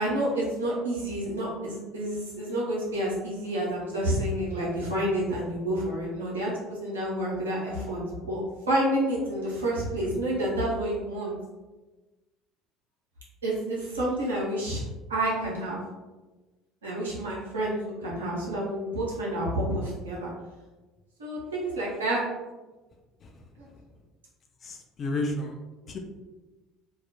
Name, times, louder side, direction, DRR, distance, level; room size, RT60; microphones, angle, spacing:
voice 1, 0.0-8.4 8.7-11.3 13.4-14.8 15.1-15.8 16.8-20.3 21.2-22.2 23.6-23.7, right 1 dB, 85° right, -6 dB, 0.6 m, -29 dB
voice 2, 23.2-24.0 24.6-26.0, left 2 dB, 40° left, 3 dB, 0.4 m, -34 dB
2.2 x 2.0 x 2.8 m, 1.2 s
hypercardioid pair, 65°, 0 cm